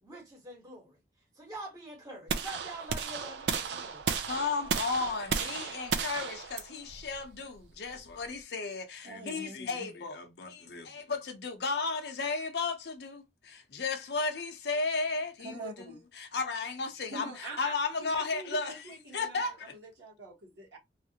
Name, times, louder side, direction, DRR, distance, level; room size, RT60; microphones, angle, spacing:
voice 1, 0.0-1.0 1.3-4.2, right 2 dB, 20° right, 1.3 m, -45 dB
sound 1, 2.3-8.4, right 6 dB, 75° right, 0.5 m, -34 dB
voice 2, 4.3-19.7, left 4 dB, 65° left, 0.7 m, -34 dB
voice 3, 9.0-9.9 15.4-16.0 17.1-20.8, right 2 dB, 90° right, 1.5 m, -45 dB
3.2 x 2.4 x 2.8 m
head